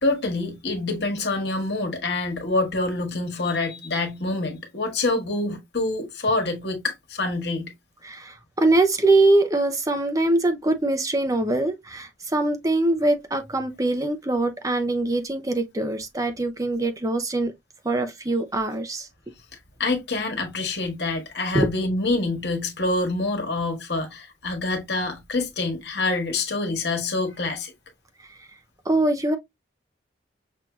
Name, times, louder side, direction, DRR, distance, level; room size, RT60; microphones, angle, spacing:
voice 1, 0.0-7.7 19.8-27.7, left 2 dB, 60° left, 1.4 m, -26 dB
voice 2, 8.0-17.5 17.8-19.1 21.5-21.7 28.9-29.4, right 2 dB, 20° right, 0.6 m, -23 dB
6.1 x 2.7 x 2.3 m
head